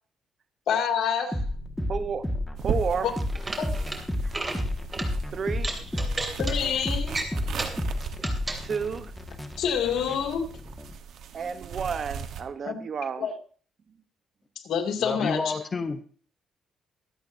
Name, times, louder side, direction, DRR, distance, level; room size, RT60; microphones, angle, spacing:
voice 1, 0.7-1.4 3.0-3.1 3.6-3.7 6.4-7.2 9.6-10.4 12.6-12.8 13.2-13.3 14.6-15.5, left 7 dB, 75° left, 4 dB, 2.4 m, -27 dB
sound 1, 1.3-10.9, left 1 dB, 5° left, 1.7 m, -31 dB
voice 2, 1.9-2.3 2.6-3.1 5.3-5.7 8.6-9.1 11.3-13.3, right 6 dB, 50° right, 12 dB, 0.9 m, -31 dB
zipper (pants), 2.6-12.4, right 7 dB, 75° right, 1.1 m, -39 dB
sound 2, 3.3-4.0 4.3-4.6 4.9-5.1 5.6-6.5 7.1-7.8 8.2-8.6, right 2 dB, 25° right, 2.7 m, -33 dB
voice 3, 15.0-16.1, left 4 dB, 35° left, 8 dB, 0.8 m, -30 dB
24.0 x 8.2 x 2.7 m, 0.42 s
cardioid pair, 90°, 0 cm